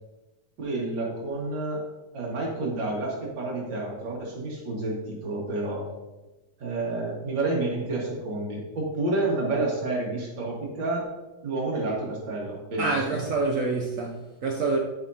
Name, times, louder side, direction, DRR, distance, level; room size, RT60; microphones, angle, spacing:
voice 1, 0.6-1.8 2.1-5.9 6.6-11.0 11.4-13.2, right 2 dB, 90° right, 2.6 m, -29 dB
voice 2, 12.8-14.8, right 3 dB, 65° right, 0.8 m, -27 dB
11.5 x 5.3 x 2.8 m
omnidirectional pair, 2.0 m